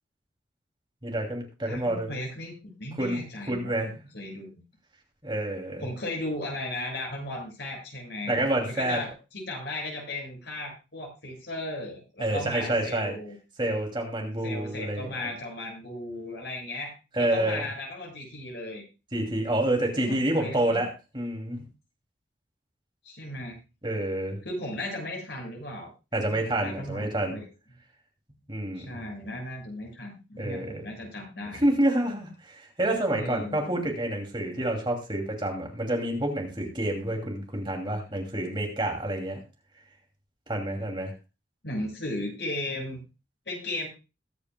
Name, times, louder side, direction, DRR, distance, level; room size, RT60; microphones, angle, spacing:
voice 1, 1.0-2.1 3.0-3.9 5.2-5.8 8.3-9.0 12.2-13.2 13.6-15.1 17.1-17.7 19.1-21.6 23.8-24.4 26.1-27.4 28.5-29.0 30.4-30.8 31.6-39.4 40.5-41.1, right 1 dB, 25° right, 1 dB, 2.6 m, -28 dB
voice 2, 1.6-3.8 4.1-4.6 5.8-8.3 8.6-13.4 14.4-18.8 20.0-20.8 23.0-23.6 24.4-27.5 28.7-31.7 33.2-33.6 41.6-43.0 43.4-43.9, left 1 dB, 70° left, -1 dB, 6.6 m, -36 dB
21.5 x 8.9 x 2.3 m, 0.29 s
head